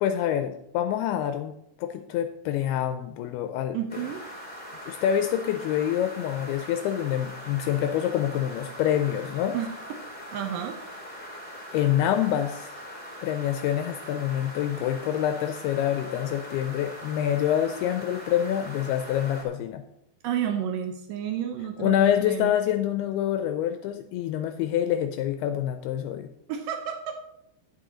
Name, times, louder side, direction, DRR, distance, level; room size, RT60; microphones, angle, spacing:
voice 1, 0.0-1.5 1.8-3.8 4.9-9.6 11.2-11.4 11.7-12.8 13.2-19.8 21.8-26.3, left 10 dB, 80° left, 8 dB, 2.4 m, -26 dB
voice 2, 3.7-4.2 9.5-9.7 10.3-10.8 20.2-22.5 26.5-27.2, right 9 dB, 80° right, 5 dB, 1.9 m, -31 dB
sound 1, 3.9-19.4, equal, 5° left, 1.4 m, -41 dB
8.6 x 7.9 x 5.0 m, 0.79 s
omnidirectional pair, 4.8 m